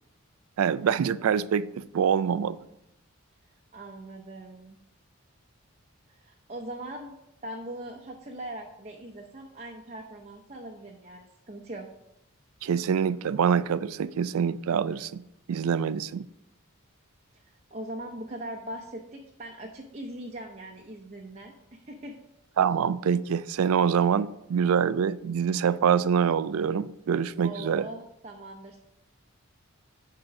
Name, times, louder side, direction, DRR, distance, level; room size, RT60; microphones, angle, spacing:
voice 1, 0.6-2.6 12.6-15.2 15.5-16.2 22.6-27.8, right 7 dB, 75° right, 0.4 m, -25 dB
voice 2, 3.7-4.8 6.1-7.1 7.4-11.9 17.3-22.1 27.4-28.8, right 1 dB, 30° right, 0.7 m, -41 dB
8.8 x 3.8 x 5.9 m
head